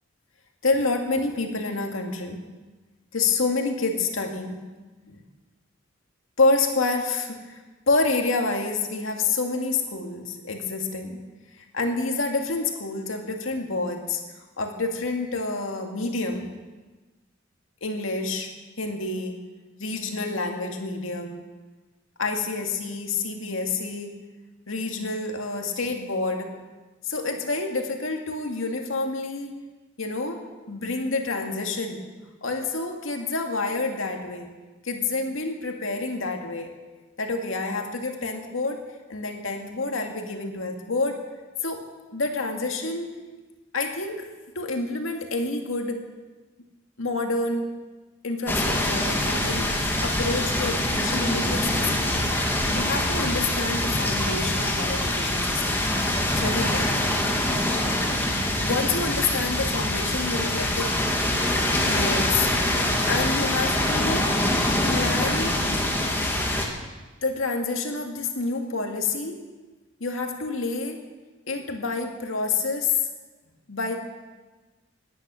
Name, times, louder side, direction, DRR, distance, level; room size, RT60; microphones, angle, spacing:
voice 1, 0.6-2.4 3.1-4.6 5.1-5.2 6.4-11.2 11.5-14.2 14.6-16.5 17.8-18.5 18.8-19.4 19.8-21.4 22.2-24.2 24.7-26.6 27.0-29.6 30.0-32.1 32.4-34.5 34.8-36.7 37.2-38.8 39.1-41.2 41.6-41.9 42.1-43.2 43.7-44.3 44.6-46.1 47.0-47.7 48.2-52.4 52.7-55.8 56.4-57.1 58.6-61.0 61.9-62.5 63.1-64.3 64.9-65.6 67.2-69.4 70.0-71.0 71.5-73.1 73.7-74.0, left 3 dB, 90° left, 3 dB, 2.1 m, -28 dB
sound 1, 48.5-66.7, left 1 dB, 10° left, 1.9 m, -24 dB
18.0 x 10.5 x 6.3 m, 1.3 s
head